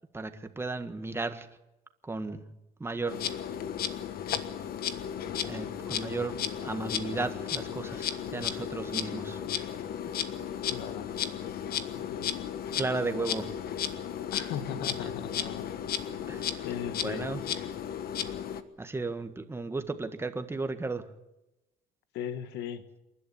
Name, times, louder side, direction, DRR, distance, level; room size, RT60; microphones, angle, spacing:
voice 1, 0.1-1.5 2.0-2.4 2.8-3.2 5.4-6.4 6.6-9.4 12.8-13.5 15.0-15.1 16.3-16.7 17.0-17.4 18.8-21.1, right 3 dB, 15° right, 8 dB, 1.7 m, -34 dB
Insect, 3.1-18.6, left 9 dB, 65° left, 1.4 m, -34 dB
voice 2, 10.7-11.1 12.1-12.4 14.3-15.6 16.6-17.3 22.1-22.8, left 9 dB, 85° left, 10 dB, 1.5 m, -37 dB
28.0 x 11.5 x 8.7 m, 0.96 s
cardioid pair, 110°, 17 cm